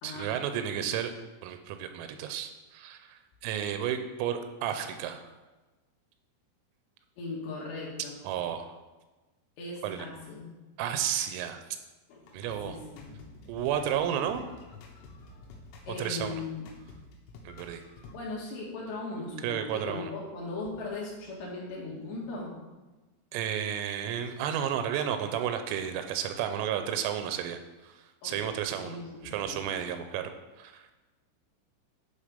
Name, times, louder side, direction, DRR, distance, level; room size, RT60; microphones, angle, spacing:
voice 1, 0.0-1.1 1.4-5.2 8.3-8.7 9.8-10.1 10.8-11.6 12.3-12.8 13.5-14.5 16.0-16.4 17.5-17.8 19.4-20.1 23.3-29.0 29.2-30.3 30.6-30.8, right 9 dB, 90° right, 8 dB, 3.4 m, -32 dB
voice 2, 7.2-8.2 9.6-10.5 12.1-12.3 12.6-13.1 15.8-16.7 18.0-22.6 28.2-28.5 28.8-29.7, left 3 dB, 65° left, -4 dB, 3.6 m, -38 dB
sound 1, 12.3-18.1, left 3 dB, 80° left, 3.5 m, -49 dB
10.5 x 4.2 x 5.1 m, 1.2 s
omnidirectional pair, 6.0 m